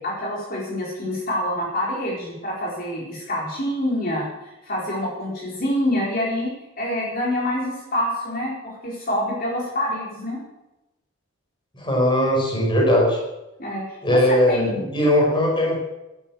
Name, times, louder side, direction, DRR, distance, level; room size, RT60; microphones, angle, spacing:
voice 1, 0.0-10.4 13.6-14.8, left 1 dB, 45° left, -4 dB, 4.4 m, -26 dB
voice 2, 11.7-13.2 14.0-15.8, left 1 dB, 25° left, -2 dB, 5.1 m, -19 dB
12.5 x 12.0 x 7.7 m, 0.97 s
head